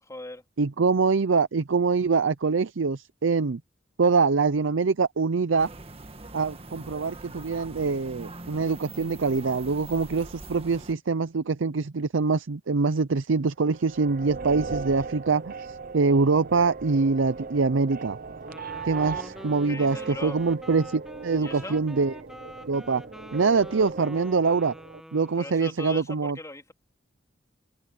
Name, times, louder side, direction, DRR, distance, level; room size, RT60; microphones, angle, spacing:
voice 1, 0.0-0.4 19.7-20.4 21.4-21.8 25.4-26.7, left 2 dB, 15° left, 3.3 m, -39 dB
voice 2, 0.6-3.6 4.0-5.7 6.3-18.2 18.8-22.1 22.7-23.0 23.3-24.7 25.1-26.4, right 4 dB, 85° right, 0.6 m, -24 dB
sound 1, 5.6-10.9, right 2 dB, 30° right, 1.5 m, -43 dB
sound 2, 13.7-25.0, right 4 dB, 50° right, 0.9 m, -39 dB
Wind instrument woodwind instrument, 18.4-25.7, equal, 5° right, 2.3 m, -45 dB
head